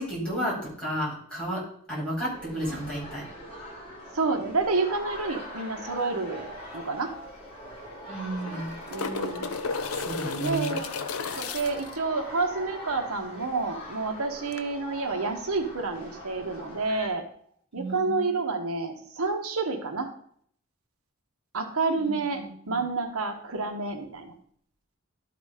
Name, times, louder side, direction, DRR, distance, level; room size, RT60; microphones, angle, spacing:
voice 1, 0.0-1.6 1.9-3.2 8.1-8.8 10.0-10.8 17.7-18.3 22.0-22.8, equal, 5° left, -7 dB, 4.1 m, -32 dB
sound 1, 2.3-17.1, equal, 25° left, 2.5 m, -42 dB
voice 2, 4.1-6.5 6.7-7.1 8.5-8.6 8.9-9.5 10.4-10.9 11.3-17.3 17.7-20.1 21.5-24.3, right 3 dB, 85° right, 4 dB, 1.1 m, -29 dB
sound 2, 6.8-6.9 7.1-7.2 8.2-12.0 14.5-14.6, left 4 dB, 85° left, 0.6 m, -33 dB
12.0 x 4.1 x 4.9 m, 0.62 s
head